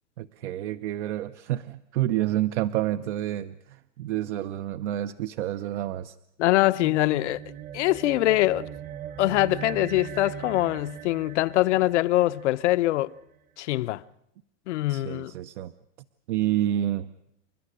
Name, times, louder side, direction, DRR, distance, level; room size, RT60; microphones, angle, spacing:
voice 1, 0.2-6.2 14.9-15.7 16.3-17.1, right 13 dB, 75° right, 0.8 m, -29 dB
voice 2, 6.4-7.4 7.7-8.7 9.2-13.1 13.6-14.0 14.7-15.3, left 17 dB, 80° left, 0.8 m, -23 dB
sound 1, 6.5-13.2, right 10 dB, 25° right, 0.8 m, -40 dB
28.5 x 11.5 x 10.0 m
supercardioid pair, 170°, 35 cm